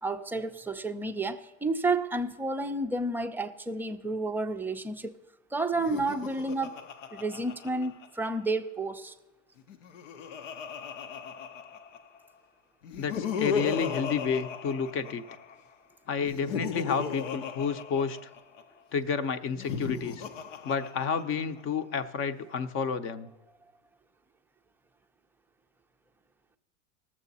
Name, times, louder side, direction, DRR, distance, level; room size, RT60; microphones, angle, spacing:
voice 1, 0.0-5.2 5.5-6.8 7.1-9.1, right 2 dB, 5° right, 0.5 m, -31 dB
Laughter, 5.7-8.5 9.6-12.2 12.8-15.6 16.2-18.6 19.5-21.6, left 6 dB, 80° left, 0.9 m, -36 dB
voice 2, 13.0-15.2 16.1-18.2 18.9-20.2 20.6-23.3, left 6 dB, 35° left, 0.7 m, -30 dB
18.5 x 7.3 x 4.1 m
supercardioid pair, 120°, 37 cm